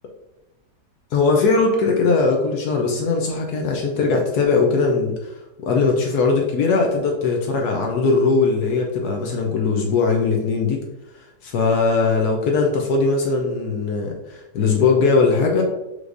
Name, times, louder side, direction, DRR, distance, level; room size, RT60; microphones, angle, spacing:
voice 1, 1.1-5.3 5.6-10.8 11.4-15.6, left 4 dB, 70° left, 1 dB, 1.1 m, -20 dB
5.0 x 3.1 x 2.5 m, 0.95 s
omnidirectional pair, 1.9 m